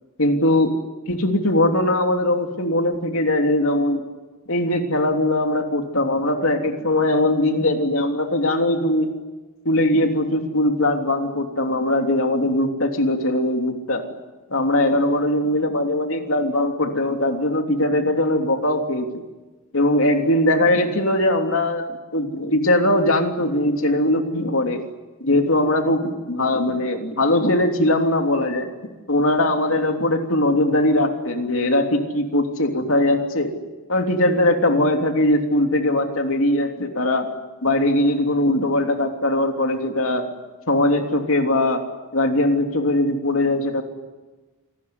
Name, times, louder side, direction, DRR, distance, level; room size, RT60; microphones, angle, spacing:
voice 1, 0.2-0.7 1.1-4.0 4.5-9.1 9.6-14.0 14.5-19.2 19.7-24.8 25.2-28.7 29.1-33.5 33.9-37.3 37.6-40.3 40.7-41.8 42.1-43.8, left 1 dB, 70° left, 4 dB, 3.2 m, -20 dB
27.5 x 19.5 x 9.7 m, 1.2 s
head